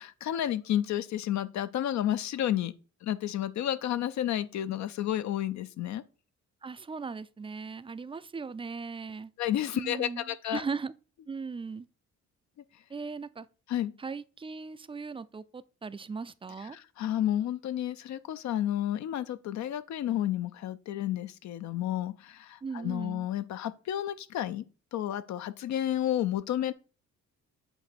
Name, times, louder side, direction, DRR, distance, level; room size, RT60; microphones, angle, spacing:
voice 1, 0.0-2.7 3.0-6.0 9.4-10.6 13.7-13.9 16.7-24.6 24.9-26.7, left 12 dB, 65° left, 0.6 m, -31 dB
voice 2, 6.6-9.3 9.7-10.9 11.3-11.9 12.9-13.5 14.0-16.8 22.6-23.3, right 5 dB, 20° right, 0.4 m, -38 dB
7.9 x 2.7 x 5.8 m
cardioid pair, 90°, 30 cm